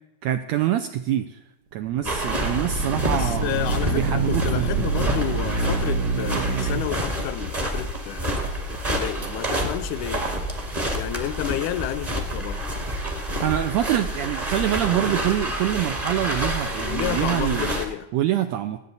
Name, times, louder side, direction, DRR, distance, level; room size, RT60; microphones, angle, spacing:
voice 1, 0.2-1.4 1.7-3.5 3.9-4.9 13.4-17.7 18.1-18.8, right 12 dB, 85° right, 1.5 m, -25 dB
sound 1, 1.8-6.8, right 4 dB, 65° right, 2.1 m, -26 dB
sound 2, 2.0-17.9, equal, 25° right, 0.9 m, -28 dB
voice 2, 3.1-8.4 8.7-10.3 10.9-12.6 16.8-18.1, left 12 dB, 80° left, 1.9 m, -31 dB
18.5 x 8.1 x 4.0 m
omnidirectional pair, 3.6 m